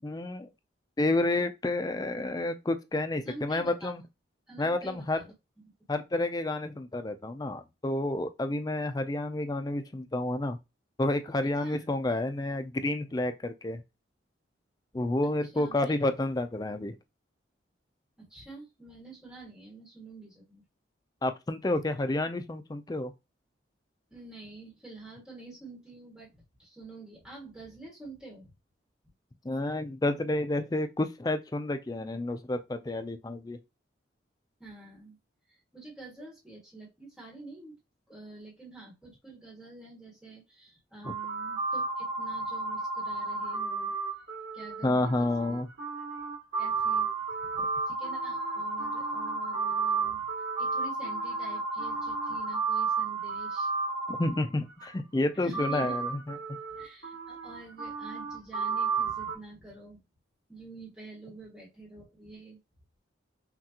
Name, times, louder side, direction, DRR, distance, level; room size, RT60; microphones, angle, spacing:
voice 1, 0.0-0.5 1.0-4.0 4.6-5.2 5.9-10.6 11.0-13.8 14.9-17.0 21.2-23.1 29.4-33.6 41.0-41.1 44.8-45.7 54.1-56.2, left 2 dB, 20° left, 0.4 m, -30 dB
voice 2, 3.2-3.9 4.5-5.3 5.6-5.7 11.6-11.8 15.2-15.9 18.2-20.6 24.1-28.5 34.6-35.2 35.5-37.8 38.1-43.9 44.5-45.6 46.0-46.3 46.6-47.1 47.4-50.3 50.6-53.7 55.3-56.0 56.7-60.0 60.5-62.6, right 3 dB, 5° right, 1.4 m, -48 dB
sound 1, 41.0-54.8 55.5-59.4, right 4 dB, 90° right, 2.1 m, -32 dB
5.8 x 2.4 x 2.8 m
head